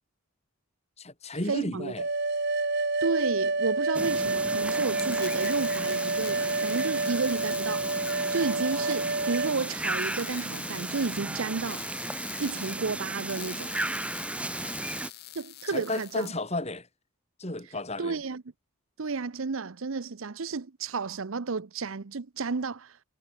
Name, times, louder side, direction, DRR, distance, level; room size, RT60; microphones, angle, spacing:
voice 1, 1.0-2.0 15.7-16.9 17.4-18.2, left 2 dB, 30° left, 3.6 m, -33 dB
voice 2, 1.5-1.9 3.0-11.9 12.4-13.7 15.4-16.3 18.0-18.4 19.0-23.0, right 4 dB, 65° right, 0.7 m, -32 dB
sound 1, 2.0-9.5, right 3 dB, 50° right, 2.8 m, -28 dB
sound 2, 3.9-15.1, right 2 dB, 5° right, 0.6 m, -35 dB
sound 3, 4.8-16.3, left 13 dB, 45° left, 2.5 m, -46 dB
head